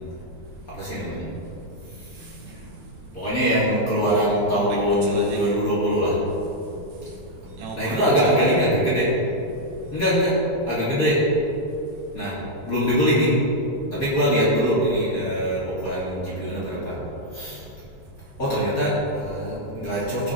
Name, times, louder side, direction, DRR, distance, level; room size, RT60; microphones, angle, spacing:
voice 1, 0.8-1.2 3.1-6.2 7.7-9.1 9.9-10.3 10.7-11.2 12.1-12.3 12.7-13.3 13.9-16.9 17.3-17.6 18.4-20.3, equal, 25° left, -10 dB, 2.7 m, -22 dB
voice 2, 2.1-2.9 4.0-4.2 4.5-5.6 6.6-8.4 9.5-9.9, right 2 dB, 75° right, -3 dB, 3.8 m, -37 dB
17.5 x 6.0 x 4.7 m, 2.9 s
omnidirectional pair, 4.8 m